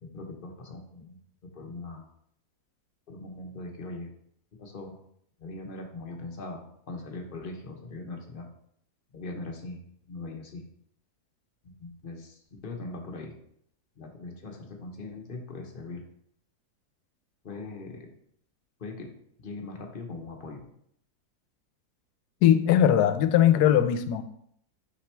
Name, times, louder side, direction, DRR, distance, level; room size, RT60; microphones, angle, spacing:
voice 1, 0.0-1.2 1.5-2.1 3.1-4.1 4.6-5.0 5.4-8.5 9.1-10.6 11.6-13.4 14.0-16.0 17.4-18.1 18.8-19.1 19.4-20.7, left 2 dB, 45° left, 3 dB, 0.8 m, -40 dB
voice 2, 22.4-24.2, left 10 dB, 80° left, 11 dB, 1.1 m, -20 dB
5.9 x 5.1 x 3.3 m, 0.69 s
omnidirectional pair, 1.7 m